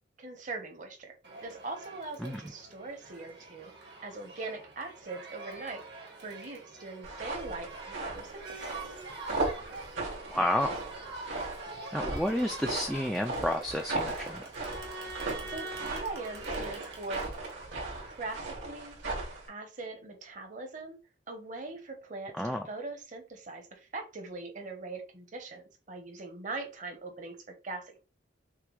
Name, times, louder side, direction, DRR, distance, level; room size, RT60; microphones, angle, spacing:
voice 1, 0.2-1.1 1.4-3.7 4.0-5.8 6.2-8.7 15.5-17.3 18.0-19.0 19.5-21.0 21.3-27.4 27.6-28.0, right 3 dB, 40° right, 4 dB, 1.0 m, -41 dB
Crowd, 1.2-18.4, right 3 dB, 60° right, 1.3 m, -45 dB
voice 2, 2.2-2.5 10.3-10.8 11.9-14.5 22.3-22.6, left 1 dB, ahead, 1 dB, 0.3 m, -31 dB
sound 1, 7.0-19.5, right 2 dB, 80° right, 2.4 m, -37 dB
6.6 x 2.3 x 3.2 m, 0.32 s
head